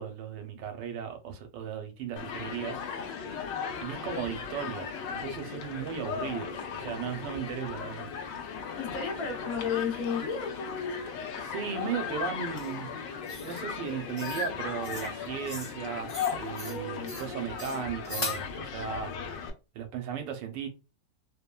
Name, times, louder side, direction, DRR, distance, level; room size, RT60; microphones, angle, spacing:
voice 1, 0.0-2.8 3.8-8.1 11.4-12.9 13.4-16.1 16.4-19.1 19.7-20.7, right 7 dB, 85° right, 1.3 m, -36 dB
Human group actions, 2.2-19.5, left 6 dB, 85° left, 1.3 m, -37 dB
voice 2, 8.8-11.1 16.6-17.1, left 6 dB, 65° left, 1.1 m, -33 dB
sound 1, 12.6-12.7 13.3-13.6 14.2-14.5 14.8-15.1 15.4-15.8 16.1-16.8 17.1-17.3 17.6-18.4, left 2 dB, 30° left, 0.6 m, -39 dB
3.2 x 2.1 x 2.2 m
omnidirectional pair, 1.9 m